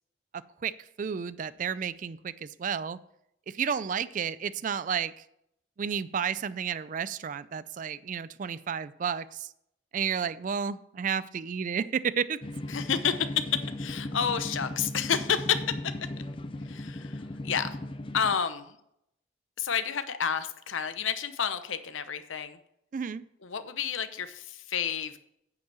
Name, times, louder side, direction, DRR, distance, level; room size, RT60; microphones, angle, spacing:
voice 1, 1.0-3.0 3.5-5.1 5.8-9.5 9.9-12.4 22.9-23.2, right 7 dB, 40° right, 16 dB, 0.3 m, -31 dB
sound 1, 12.4-18.4, left 1 dB, 25° left, 0.5 m, -37 dB
voice 2, 12.7-13.4 13.8-15.6 16.7-17.8 18.1-18.8 19.6-22.6 23.4-25.2, left 7 dB, 85° left, 11 dB, 0.8 m, -30 dB
9.3 x 5.4 x 6.9 m, 0.76 s
head